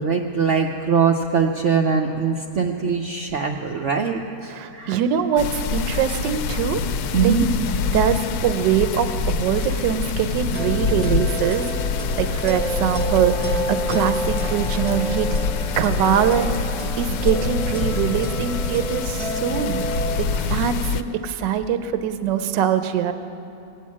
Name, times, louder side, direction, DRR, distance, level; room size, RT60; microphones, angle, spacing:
voice 1, 0.0-5.0 7.1-7.5, right 6 dB, 65° right, 2 dB, 0.7 m, -22 dB
voice 2, 4.5-6.8 7.2-7.3 7.9-15.4 15.8-16.6 17.0-19.8 20.2-23.1, right 8 dB, 85° right, 9 dB, 1.3 m, -23 dB
sound 1, 5.4-21.0, left 4 dB, 70° left, 1.0 m, -26 dB
sound 2, 10.5-20.2, equal, 5° left, 1.4 m, -30 dB
17.5 x 9.3 x 7.4 m, 2.7 s
omnidirectional pair, 1.9 m